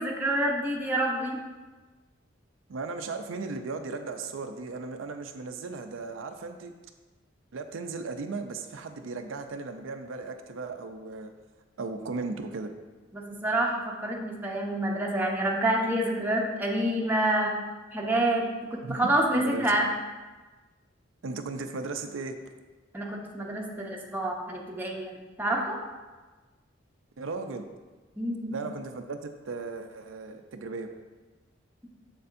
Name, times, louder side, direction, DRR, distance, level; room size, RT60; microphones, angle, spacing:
voice 1, 0.0-1.4 13.1-17.5 17.9-19.9 22.9-25.1 25.4-25.8 28.2-28.6, right 1 dB, 10° right, -2 dB, 0.8 m, -27 dB
voice 2, 2.7-6.7 7.5-11.3 11.8-12.7 18.8-19.7 21.2-22.4 27.2-27.7 28.5-30.9, right 3 dB, 85° right, 6 dB, 0.5 m, -36 dB
7.3 x 6.8 x 2.6 m, 1.3 s
head